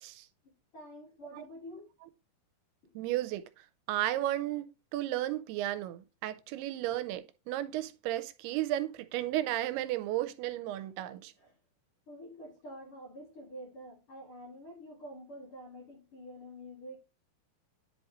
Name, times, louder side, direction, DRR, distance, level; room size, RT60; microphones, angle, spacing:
voice 1, 0.4-1.9 11.4-11.5 12.1-17.0, equal, 45° left, 2.0 m, -48 dB
voice 2, 3.0-3.4 3.9-11.3, right 14 dB, 85° right, 2.7 m, -34 dB
10.5 x 4.3 x 2.9 m
omnidirectional pair, 4.5 m